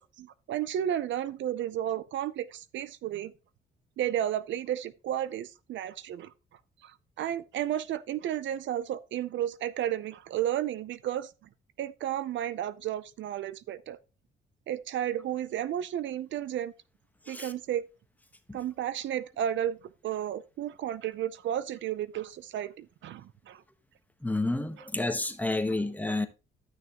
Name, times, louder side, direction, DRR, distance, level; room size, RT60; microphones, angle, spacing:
voice 1, 0.2-3.3 4.0-6.3 6.8-11.3 11.8-14.0 14.7-16.7 17.3-17.8 18.5-19.8 20.0-23.6, right 11 dB, 70° right, 0.6 m, -32 dB
voice 2, 24.2-26.3, left 2 dB, 10° left, 1.2 m, -30 dB
13.0 x 6.3 x 3.0 m
cardioid pair, 90°, 20 cm